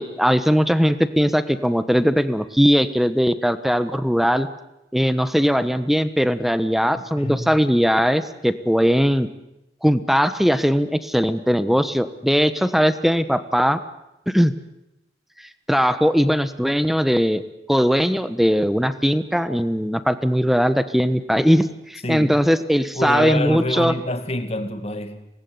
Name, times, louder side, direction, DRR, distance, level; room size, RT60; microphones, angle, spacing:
voice 1, 0.0-4.5 4.9-9.3 9.8-13.8 14.3-14.5 15.7-17.4 17.7-23.9, equal, ahead, 1.2 m, -19 dB
voice 2, 7.1-7.5 22.0-22.4 23.0-25.3, left 1 dB, 35° left, 2.2 m, -26 dB
25.5 x 20.0 x 9.6 m
head